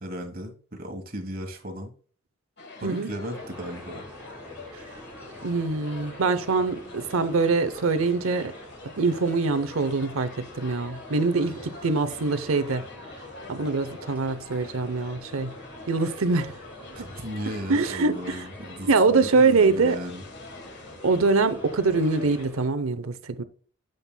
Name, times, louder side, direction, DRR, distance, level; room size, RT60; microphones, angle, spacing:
voice 1, 0.0-1.9 2.7-4.0 16.9-20.2, equal, 40° right, 1.3 m, -36 dB
sound 1, 2.6-22.5, left 3 dB, 50° left, 1.4 m, -45 dB
sound 2, 3.3-22.7, equal, 10° right, 2.3 m, -47 dB
voice 2, 5.4-8.5 9.0-12.8 13.5-15.5 15.9-16.5 17.7-18.4 18.9-20.0 21.0-23.4, right 4 dB, 75° right, 0.7 m, -24 dB
9.0 x 7.8 x 2.2 m
head